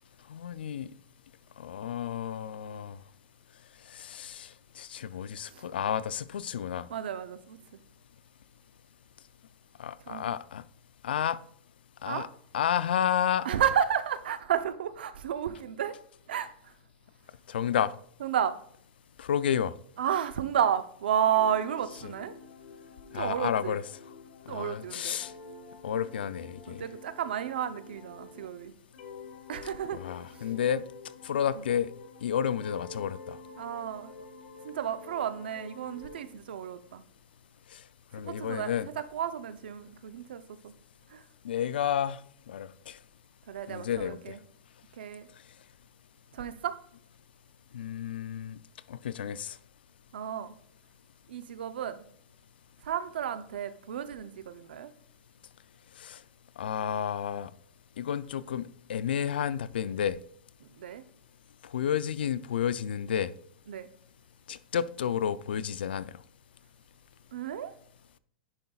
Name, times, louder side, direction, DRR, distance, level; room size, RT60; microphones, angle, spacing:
voice 1, 0.3-0.9 1.6-3.0 3.9-4.5 4.8-6.9 9.8-10.6 11.0-11.4 12.0-12.3 12.5-13.5 17.5-17.9 19.2-19.7 23.1-23.8 24.5-25.3 25.8-26.8 29.9-30.8 31.2-31.9 32.2-33.4 37.7-37.8 38.1-38.9 41.4-42.2 42.5-43.0 43.7-44.3 47.7-48.6 48.9-49.6 56.0-56.2 56.6-57.5 58.0-60.2 61.7-63.3 64.5-66.1, left 9 dB, 90° left, 0.4 m, -31 dB
voice 2, 6.9-7.6 10.1-10.3 12.1-12.3 13.4-16.0 16.3-16.7 18.2-18.5 20.0-22.3 23.1-23.8 24.5-25.2 26.7-28.7 29.5-30.5 33.6-34.1 34.6-37.0 38.3-38.7 39.1-40.7 41.1-41.3 43.5-44.4 45.0-45.3 46.3-46.8 50.1-50.6 51.3-52.0 52.8-54.9 60.6-61.0 63.7-63.9 67.3-67.7, right 9 dB, 85° right, 0.6 m, -32 dB
sound 1, 21.3-28.5 28.9-32.3 32.6-36.3, left 3 dB, 70° left, 1.3 m, -48 dB
9.8 x 5.3 x 2.3 m
supercardioid pair, 145°, 5 cm